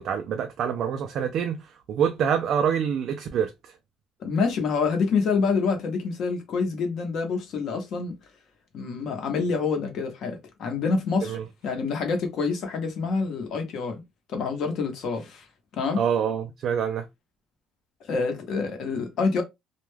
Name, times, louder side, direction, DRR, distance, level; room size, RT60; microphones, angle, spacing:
voice 1, 0.0-1.6 1.9-3.7 11.2-11.4 16.0-17.1, right 8 dB, 45° right, 0.3 m, -26 dB
voice 2, 4.2-8.2 8.7-11.4 11.6-14.0 14.3-15.4 15.7-16.0 18.0-19.4, left 4 dB, 50° left, 0.8 m, -27 dB
2.3 x 2.1 x 3.1 m
cardioid pair, 170°, 0 cm